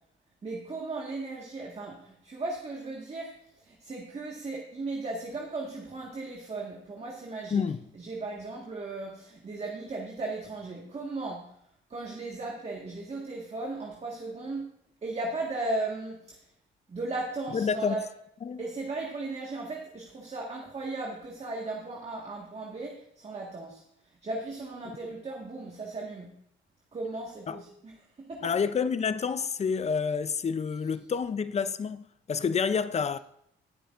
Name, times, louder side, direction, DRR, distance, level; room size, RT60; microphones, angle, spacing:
voice 1, 0.4-7.6 7.9-11.5 11.9-14.6 15.0-16.4 16.9-18.0 18.6-23.8 24.2-26.3 26.9-27.9 28.3-28.5, right 2 dB, 30° right, 1.6 m, -36 dB
voice 2, 17.5-18.0 18.4-18.6 27.5-27.6 28.4-33.2, left 6 dB, 35° left, 0.5 m, -28 dB
18.5 x 6.9 x 2.5 m
cardioid pair, 90°, 20 cm